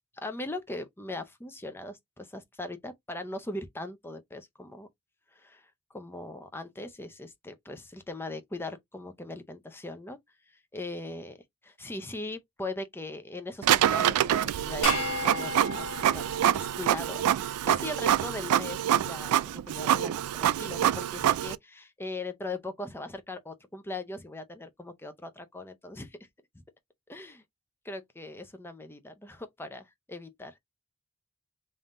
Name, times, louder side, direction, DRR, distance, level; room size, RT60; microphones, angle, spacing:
voice 1, 0.1-4.9 5.3-10.2 10.7-11.4 11.6-26.2 26.5-26.6 27.1-27.4 27.8-30.6, left 2 dB, 10° left, 0.5 m, -40 dB
Printer, 13.6-21.6, right 11 dB, 75° right, 0.3 m, -26 dB
sound 1, 14.8-17.4, left 3 dB, 65° left, 1.3 m, -35 dB
3.6 x 2.7 x 3.7 m
head